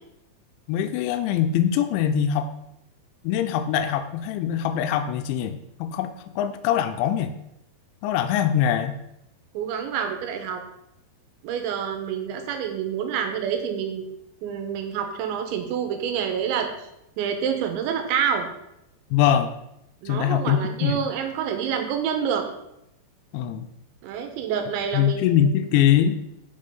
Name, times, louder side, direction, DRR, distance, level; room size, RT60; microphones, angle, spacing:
voice 1, 0.7-2.5 3.2-7.3 8.0-9.0 19.1-19.5 20.1-21.0 23.3-23.6 24.9-26.2, left 9 dB, 90° left, 9 dB, 2.9 m, -23 dB
voice 2, 9.5-10.6 11.4-14.1 14.4-16.7 17.2-18.5 20.0-22.5 24.0-25.5, right 7 dB, 85° right, 5 dB, 3.3 m, -27 dB
7.0 x 5.4 x 5.4 m, 0.83 s
omnidirectional pair, 5.2 m